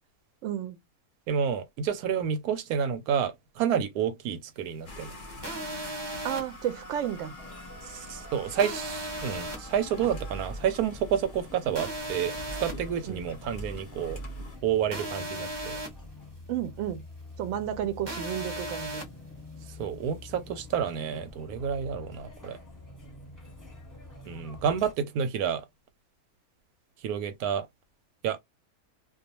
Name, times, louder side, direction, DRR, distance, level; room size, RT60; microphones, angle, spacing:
voice 1, 0.4-0.8 6.2-7.3 13.1-13.2 16.5-17.0 17.4-19.0, right 10 dB, 70° right, 0.8 m, -32 dB
voice 2, 1.3-5.1 7.8-14.2 14.6-15.8 19.7-22.6 24.3-25.7 27.0-27.7 28.2-28.4, right 8 dB, 85° right, 1.1 m, -29 dB
sound 1, 4.9-14.6, equal, 50° left, 0.6 m, -44 dB
sound 2, 5.4-6.4 8.6-9.6 11.7-12.7 14.9-15.9 18.1-19.0, right 1 dB, 30° right, 0.5 m, -36 dB
sound 3, 7.4-24.9, left 2 dB, 15° left, 0.8 m, -47 dB
2.3 x 2.3 x 2.8 m
omnidirectional pair, 1.6 m